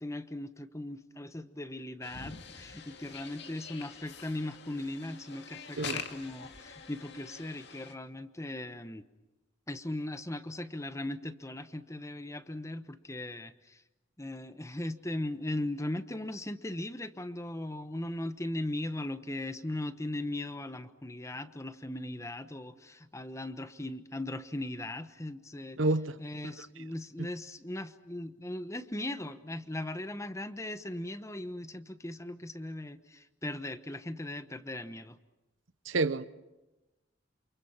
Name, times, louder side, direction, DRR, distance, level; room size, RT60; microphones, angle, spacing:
voice 1, 0.0-9.0 9.7-13.8 14.2-25.8 26.2-35.2, left 1 dB, 15° left, 1.1 m, -38 dB
sound 1, 2.0-7.9, left 6 dB, 60° left, 2.3 m, -45 dB
voice 2, 25.8-26.2 35.9-36.3, right 2 dB, 85° right, 1.0 m, -28 dB
28.5 x 28.5 x 5.8 m
head